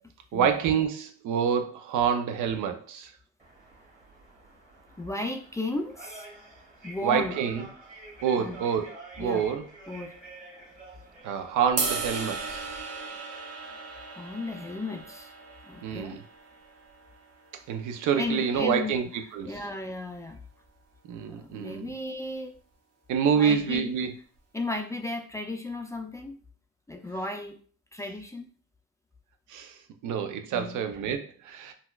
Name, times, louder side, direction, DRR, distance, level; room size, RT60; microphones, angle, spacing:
voice 1, 0.3-3.1 7.0-7.6 8.2-8.9 9.2-9.7 11.2-12.7 15.8-16.2 17.7-19.5 21.1-21.9 23.1-24.1 29.5-31.7, right 7 dB, 80° right, 7 dB, 0.5 m, -27 dB
sound 1, 3.4-12.8, right 2 dB, 25° right, 1.3 m, -48 dB
voice 2, 5.0-6.3 6.8-7.4 8.4-8.7 9.2-9.5 9.9-10.2 14.1-15.3 15.6-16.2 18.1-18.9 19.4-20.4 21.3-22.6 23.4-23.9 24.5-26.4 26.9-27.6 27.9-28.5 30.5-30.8, left 2 dB, 10° left, 5 dB, 0.4 m, -34 dB
sound 2, 11.8-18.0, right 4 dB, 55° right, 0.8 m, -36 dB
4.1 x 2.3 x 2.3 m, 0.43 s
cardioid pair, 90°, 30 cm